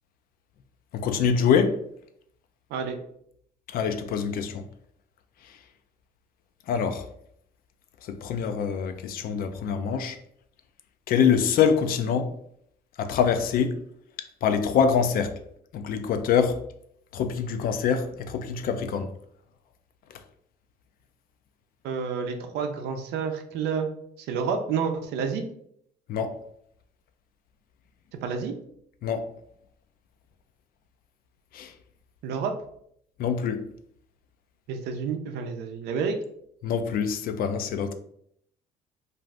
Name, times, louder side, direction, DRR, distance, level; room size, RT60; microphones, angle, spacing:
voice 1, 0.9-1.8 3.7-4.6 6.7-7.0 8.1-10.2 11.1-12.3 13.0-13.8 14.4-15.3 15.7-16.6 17.1-19.1 26.1-26.4 29.0-29.3 31.5-31.7 33.2-33.6 36.6-37.9, left 7 dB, 60° left, 0.4 m, -25 dB
voice 2, 21.8-23.9 24.3-25.4 28.2-28.5 32.2-32.5 34.7-36.2, right 6 dB, 80° right, 0.5 m, -29 dB
2.5 x 2.5 x 3.2 m
cardioid pair, 110°, 17 cm